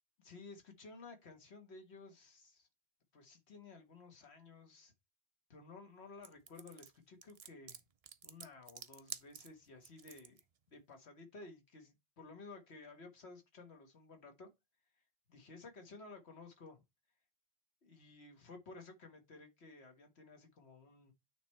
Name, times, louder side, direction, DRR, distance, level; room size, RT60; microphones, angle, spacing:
voice 1, 0.2-2.7 3.1-4.9 5.5-7.8 8.2-10.4 10.7-14.5 15.3-16.8 17.8-21.1, left 3 dB, 80° left, 1.7 m, -55 dB
sound 1, 6.2-10.4, right 7 dB, 45° right, 0.5 m, -50 dB
9.0 x 3.3 x 4.3 m
omnidirectional pair, 1.1 m